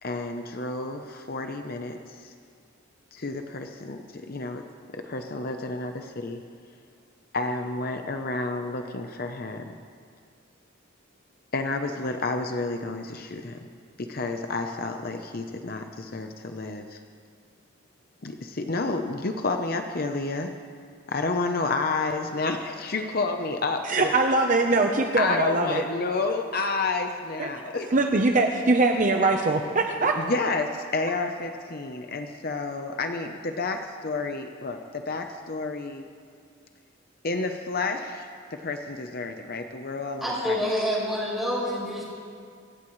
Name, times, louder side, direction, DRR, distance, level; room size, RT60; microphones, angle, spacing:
voice 1, 0.0-2.3 3.1-4.6 4.9-6.4 7.3-9.7 11.5-13.6 14.0-17.0 18.2-20.5 21.1-24.1 25.2-27.9 30.2-36.0 37.2-40.6, left 3 dB, 50° left, 5 dB, 0.8 m, -30 dB
voice 2, 23.8-25.8 27.4-27.5 27.9-30.2, right 2 dB, 40° right, 3 dB, 0.9 m, -22 dB
voice 3, 40.2-42.1, equal, ahead, -6 dB, 5.5 m, -27 dB
24.5 x 17.5 x 3.2 m, 2.2 s
head